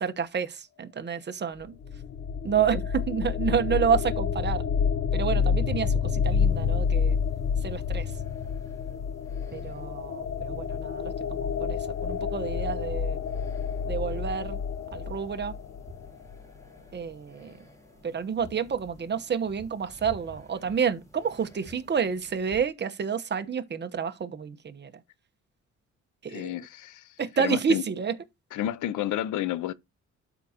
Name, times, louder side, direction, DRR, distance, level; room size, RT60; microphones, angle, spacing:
voice 1, 0.0-1.8 2.4-4.6 5.1-7.2 7.6-8.0 9.5-13.2 13.9-14.6 14.9-15.5 16.9-17.5 18.0-24.9 26.2-26.5 27.2-28.1, right 7 dB, 35° right, 1.1 m, -29 dB
sound 1, 1.6-16.4, left 6 dB, 55° left, 0.9 m, -29 dB
sound 2, 6.3-22.7, left 1 dB, 10° left, 3.1 m, -52 dB
voice 2, 26.3-27.8 28.5-29.7, left 12 dB, 90° left, 0.8 m, -31 dB
12.0 x 4.9 x 2.9 m
cardioid pair, 110°, 29 cm